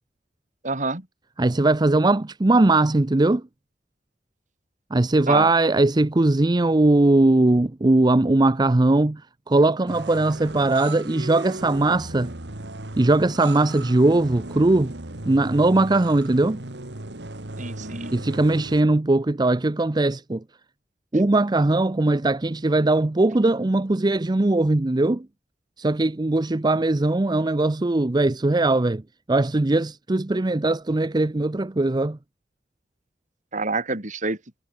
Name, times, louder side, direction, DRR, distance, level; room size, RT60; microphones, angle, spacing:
voice 1, 0.6-1.0 5.3-5.5 17.6-18.2 33.5-34.4, right 3 dB, 45° right, 4.0 m, -27 dB
voice 2, 1.4-3.4 4.9-9.2 9.5-12.3 13.0-14.9 15.3-16.6 18.1-20.4 21.1-25.3 25.8-29.0 29.3-32.2, right 2 dB, 25° right, 0.6 m, -20 dB
sound 1, 9.9-18.8, right 2 dB, 70° right, 2.5 m, -37 dB
head